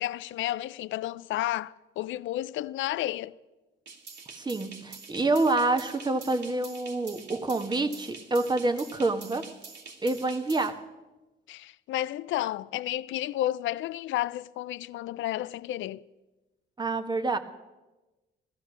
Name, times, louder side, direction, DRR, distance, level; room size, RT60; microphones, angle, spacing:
voice 1, 0.0-3.3 11.5-16.0, left 14 dB, 75° left, 0.4 m, -32 dB
sound 1, 3.9-10.7, right 4 dB, 65° right, 2.6 m, -46 dB
voice 2, 4.3-9.5 10.0-10.8 16.8-17.4, right 2 dB, 20° right, 1.4 m, -27 dB
16.0 x 14.0 x 6.2 m
cardioid pair, 90°, 20 cm